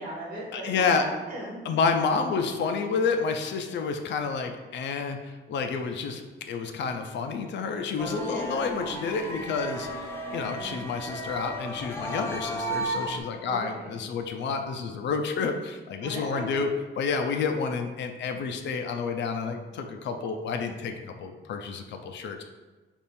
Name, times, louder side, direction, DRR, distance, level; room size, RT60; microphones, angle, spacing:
voice 1, 0.0-1.6 8.1-8.7 13.4-14.1 16.0-16.6, right 1 dB, 40° right, -5 dB, 1.2 m, -37 dB
voice 2, 0.5-1.1 1.6-6.2 6.5-10.1 10.3-22.4, left 5 dB, 65° left, 5 dB, 0.5 m, -29 dB
sound 1, 8.0-13.2, right 1 dB, 10° left, 0.7 m, -34 dB
3.6 x 2.4 x 4.2 m, 1.2 s
cardioid pair, 90°, 20 cm